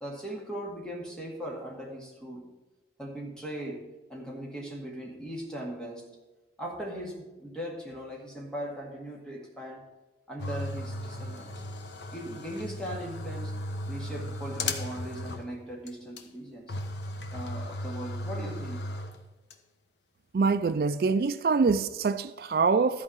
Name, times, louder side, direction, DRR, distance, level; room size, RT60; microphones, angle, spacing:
voice 1, 0.0-2.5 3.0-6.1 6.6-9.8 10.3-11.7 12.1-13.6 13.9-16.8 17.3-18.8, right 1 dB, 5° left, 2.0 m, -39 dB
sound 1, 10.4-15.6 15.9-16.0 16.2-16.3 16.7-19.5, left 1 dB, 80° left, 1.1 m, -36 dB
voice 2, 20.3-23.0, right 4 dB, 55° right, 0.3 m, -25 dB
13.5 x 4.8 x 7.2 m
head